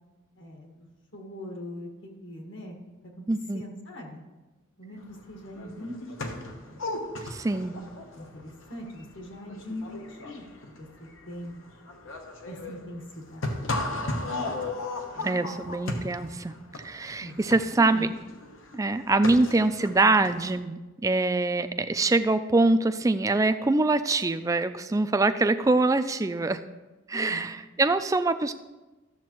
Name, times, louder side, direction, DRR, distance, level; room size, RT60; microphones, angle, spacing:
voice 1, 0.3-0.9 1.1-2.7 3.2-3.3 3.5-4.2 4.8-6.0 6.2-6.3 6.7-6.8 8.1-10.9 11.3-11.6 12.4-13.6 15.1-15.4 17.2-17.3 17.7-18.1 27.1-27.5, left 1 dB, 65° left, 1 dB, 1.6 m, -41 dB
voice 2, 3.3-3.6 7.3-7.8 15.2-18.1 18.7-26.6 27.1-28.5, right 2 dB, 15° right, 10 dB, 0.3 m, -24 dB
sound 1, 5.2-5.3 5.5-20.5, left 2 dB, 85° left, 1.1 m, -36 dB
12.5 x 7.3 x 3.0 m, 1.1 s
head